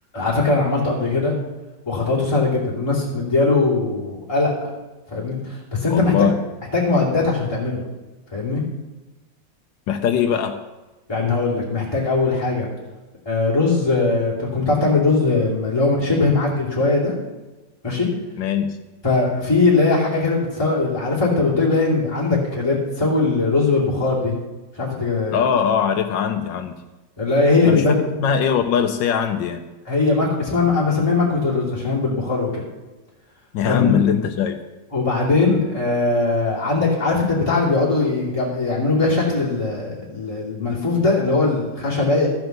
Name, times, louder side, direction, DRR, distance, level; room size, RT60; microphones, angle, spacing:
voice 1, 0.1-1.3 1.9-4.5 5.1-6.1 6.7-7.8 8.3-8.6 11.1-12.7 13.2-17.1 17.8-18.1 19.0-24.4 24.7-25.4 27.2-28.0 29.9-32.6 33.6-33.9 34.9-42.3, left 3 dB, 15° left, -6 dB, 2.7 m, -20 dB
voice 2, 5.9-6.4 9.9-10.6 18.4-18.7 25.3-26.8 27.6-27.8 28.2-29.6 33.5-34.6, left 8 dB, 80° left, 6 dB, 1.5 m, -21 dB
13.5 x 7.8 x 6.7 m, 1.1 s
omnidirectional pair, 2.0 m